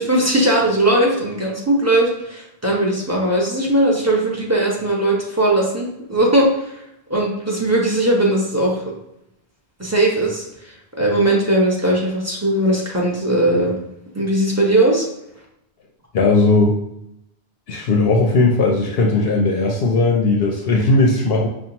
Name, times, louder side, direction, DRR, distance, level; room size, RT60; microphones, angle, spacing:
voice 1, 0.0-6.7 7.1-8.8 9.8-13.8 14.1-15.1, right 1 dB, 15° right, -4 dB, 0.9 m, -19 dB
voice 2, 16.1-16.7 17.7-21.5, left 3 dB, 70° left, 0 dB, 0.8 m, -17 dB
5.4 x 2.3 x 2.9 m, 0.82 s
omnidirectional pair, 1.1 m